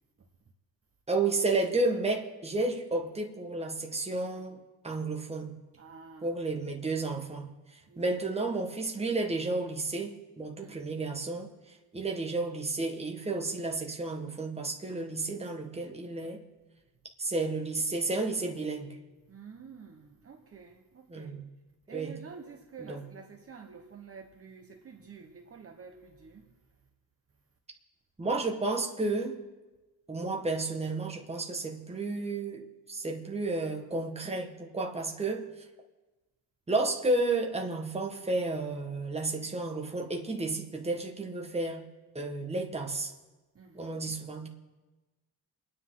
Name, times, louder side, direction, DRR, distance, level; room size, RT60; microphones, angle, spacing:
voice 1, 1.1-5.6 6.2-16.4 17.2-18.9 21.1-21.5 21.9-22.1 22.9-23.0 28.2-29.4 30.1-35.5 36.7-41.9 42.1-43.1 43.7-44.5, right 2 dB, 15° right, 1.4 m, -32 dB
voice 2, 5.7-6.4 7.9-8.1 10.6-10.9 19.2-21.4 21.9-26.6 43.5-44.2, right 6 dB, 35° right, 1.1 m, -49 dB
28.5 x 10.0 x 3.8 m
wide cardioid pair, 155°, 41 cm